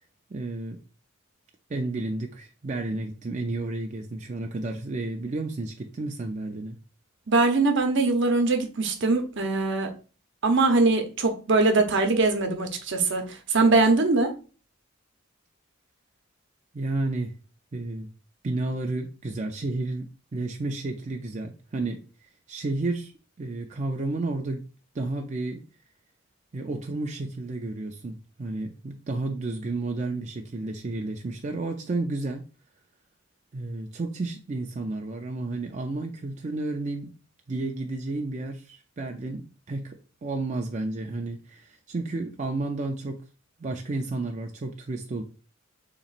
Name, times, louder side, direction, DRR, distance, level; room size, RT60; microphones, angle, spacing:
voice 1, 0.3-0.8 1.7-6.8 16.7-17.3 17.7-18.1 18.4-22.0 22.5-23.1 23.4-24.7 24.9-25.6 26.5-32.4 33.5-37.1 37.5-39.9 40.2-43.2 43.6-45.2, right 2 dB, 35° right, 0.4 m, -31 dB
voice 2, 7.3-9.9 10.4-14.3, right 3 dB, 65° right, 0.9 m, -22 dB
6.9 x 3.0 x 2.5 m
head